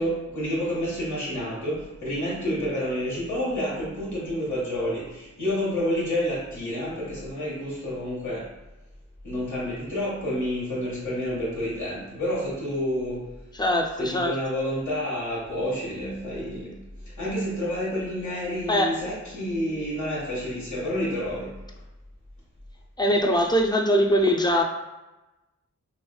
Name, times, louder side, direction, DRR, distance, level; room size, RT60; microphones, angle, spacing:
voice 1, 0.0-8.5 9.2-13.2 14.0-16.8 17.1-21.5, equal, 75° left, -7 dB, 1.4 m, -29 dB
voice 2, 13.5-14.3 18.7-19.0 23.0-24.6, equal, 15° left, 3 dB, 0.4 m, -22 dB
5.1 x 2.3 x 2.2 m, 1.0 s
wide cardioid pair, 105°, 30 cm